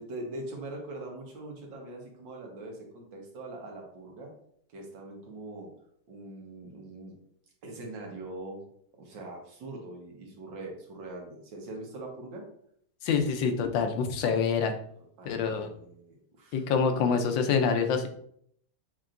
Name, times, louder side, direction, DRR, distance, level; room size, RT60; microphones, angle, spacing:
voice 1, 0.0-4.3 4.7-5.7 6.1-7.1 7.6-8.6 9.0-12.5 15.2-16.6, right 2 dB, 80° right, 0 dB, 1.9 m, -42 dB
voice 2, 13.0-14.7 15.2-15.7 16.5-18.1, left 6 dB, 90° left, 6 dB, 1.4 m, -26 dB
6.9 x 3.0 x 2.5 m, 0.66 s
omnidirectional pair, 2.0 m